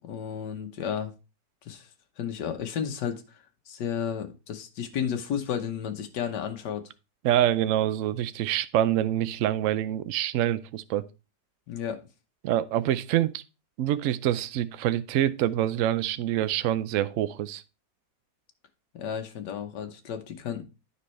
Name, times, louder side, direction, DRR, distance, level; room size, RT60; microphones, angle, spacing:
voice 1, 0.0-1.1 1.6-1.9 2.2-6.8 11.7-12.0 18.9-20.6, left 8 dB, 75° left, 1.6 m, -33 dB
voice 2, 7.2-11.0 12.4-13.4 13.8-17.6, right 12 dB, 75° right, 0.7 m, -26 dB
9.9 x 5.3 x 3.1 m
omnidirectional pair, 1.9 m